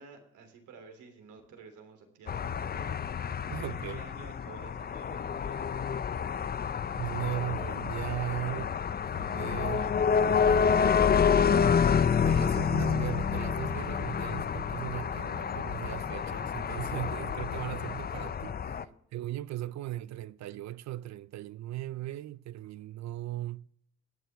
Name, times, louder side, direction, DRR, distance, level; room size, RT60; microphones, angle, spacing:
voice 1, 0.0-3.0 3.5-5.8 18.7-18.9, right 4 dB, 80° right, 3.2 m, -51 dB
sound 1, 2.3-18.8, left 7 dB, 30° left, 0.5 m, -28 dB
voice 2, 3.5-4.0 7.0-8.7 9.1-9.9 10.3-10.7 12.2-18.8 19.1-23.6, right 14 dB, 65° right, 0.5 m, -38 dB
21.0 x 9.1 x 3.5 m
cardioid pair, 90°, 30 cm